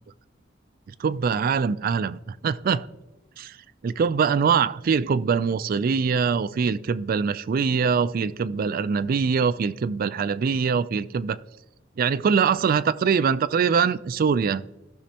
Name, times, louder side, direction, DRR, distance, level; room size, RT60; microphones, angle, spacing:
voice 1, 0.9-2.9 3.4-3.6 3.8-11.4 12.0-14.6, right 6 dB, 50° right, 15 dB, 0.3 m, -23 dB
15.5 x 6.1 x 2.8 m, 0.97 s
head